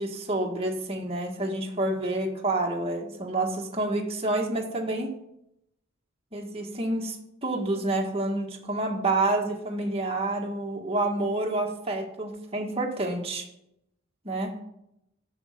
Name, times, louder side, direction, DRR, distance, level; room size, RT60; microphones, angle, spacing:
voice 1, 0.0-5.1 6.3-7.2 7.4-13.4 14.2-14.5, right 2 dB, 30° right, 0 dB, 1.7 m, -28 dB
10.0 x 7.2 x 6.4 m, 0.82 s
head